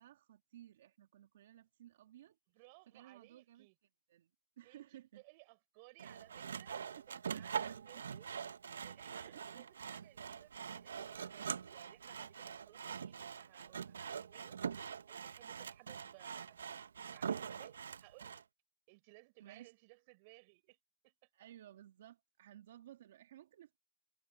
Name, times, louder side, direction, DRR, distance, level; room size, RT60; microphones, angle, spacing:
voice 1, 0.0-2.4 2.9-3.7 4.1-5.2 6.7-8.0 9.2-9.7 19.4-19.7 21.3-23.8, right 12 dB, 55° right, 2.4 m, -57 dB
voice 2, 2.5-3.7 4.6-8.3 8.8-14.6 15.1-18.5 18.9-20.8 21.0-21.3, right 28 dB, 35° right, 5.8 m, -62 dB
Sawing, 6.0-18.4, right 7 dB, 80° right, 0.7 m, -44 dB
hypercardioid pair, 155°, 0 cm